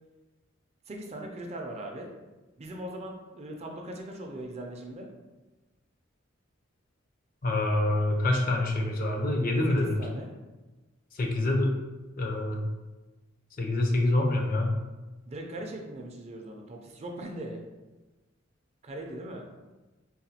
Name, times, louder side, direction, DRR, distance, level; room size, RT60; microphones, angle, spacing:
voice 1, 0.9-2.1 2.6-5.1 10.0-10.3 15.3-17.6 18.8-19.5, right 1 dB, 35° right, 2 dB, 0.4 m, -39 dB
voice 2, 7.4-10.0 11.1-11.8 12.2-12.6 13.6-14.8, left 2 dB, 45° left, 1 dB, 0.5 m, -26 dB
3.9 x 2.2 x 2.8 m, 1.2 s
head